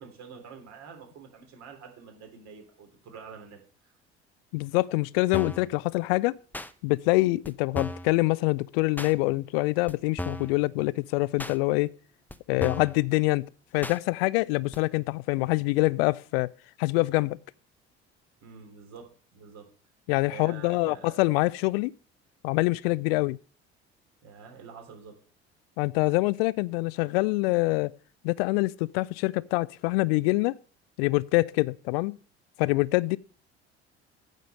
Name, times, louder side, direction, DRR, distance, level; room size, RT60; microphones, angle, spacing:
voice 1, 0.0-3.9 18.4-19.7 20.3-21.2 24.2-25.2, right 6 dB, 55° right, 3.5 m, -47 dB
voice 2, 4.5-6.3 6.8-11.9 12.5-13.4 13.7-16.5 16.8-17.4 20.1-21.9 22.4-23.4 25.8-27.9 28.2-30.6 31.0-32.2 32.6-33.2, left 22 dB, 65° left, 0.5 m, -25 dB
sound 1, 5.3-5.7 6.5-6.7 7.4-7.5 7.7-8.1 9.0-9.1 9.9-10.0 10.2-10.5 11.4-11.6 12.3-12.4 12.6-13.0 13.8-14.0 14.7-14.8, left 1 dB, 5° left, 0.7 m, -35 dB
9.1 x 5.2 x 7.7 m
figure-of-eight pair, 60°, 33 cm